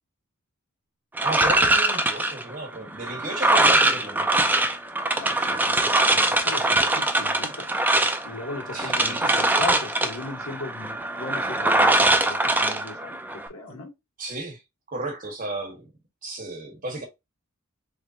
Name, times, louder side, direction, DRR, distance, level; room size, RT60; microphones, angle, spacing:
sound 1, 1.2-13.5, right 2 dB, 10° right, 0.4 m, -22 dB
voice 1, 1.2-4.5 8.7-9.4 13.7-13.8 14.2-14.6 14.9-15.9 16.2-17.1, right 2 dB, 40° right, 1.2 m, -34 dB
voice 2, 5.2-7.7 8.2-13.9, left 3 dB, 85° left, 1.5 m, -38 dB
3.7 x 3.2 x 2.7 m
head